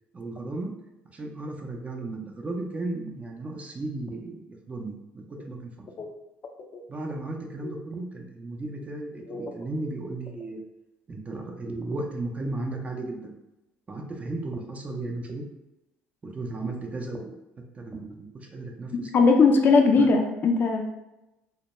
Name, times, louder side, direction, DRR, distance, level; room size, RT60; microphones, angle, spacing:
voice 1, 0.1-0.7 1.1-5.9 6.9-10.6 11.1-13.3 13.9-15.4 16.2-17.3 17.7-19.1 20.0-20.1, right 2 dB, 30° right, 1 dB, 0.5 m, -35 dB
voice 2, 18.9-20.8, left 4 dB, 45° left, 3 dB, 0.4 m, -20 dB
2.2 x 2.2 x 2.9 m, 0.95 s
supercardioid pair, 75°, 5 cm